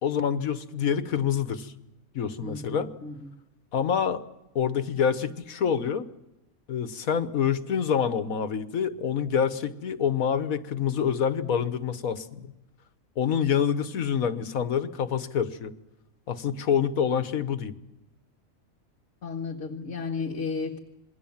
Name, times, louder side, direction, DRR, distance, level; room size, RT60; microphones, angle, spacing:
voice 1, 0.0-1.7 2.1-2.9 3.7-4.2 4.5-6.1 6.7-12.5 13.2-15.7 16.3-17.7, left 7 dB, 85° left, 11 dB, 1.6 m, -26 dB
voice 2, 2.4-3.3 19.2-20.8, left 4 dB, 60° left, 2 dB, 1.8 m, -33 dB
27.5 x 21.5 x 7.3 m, 0.95 s
omnidirectional pair, 1.4 m